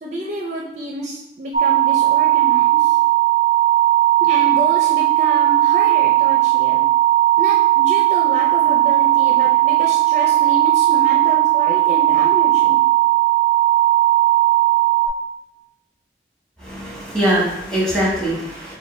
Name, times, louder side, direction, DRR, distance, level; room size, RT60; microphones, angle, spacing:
voice 1, 0.0-3.0 4.2-6.8 7.4-12.8, right 1 dB, 40° right, -1 dB, 0.5 m, -29 dB
sound 1, 1.5-15.1, right 15 dB, 80° left, 0.8 m, -16 dB
voice 2, 16.6-18.7, right 1 dB, 5° left, -6 dB, 1.3 m, -22 dB
6.4 x 2.2 x 3.2 m, 0.90 s
head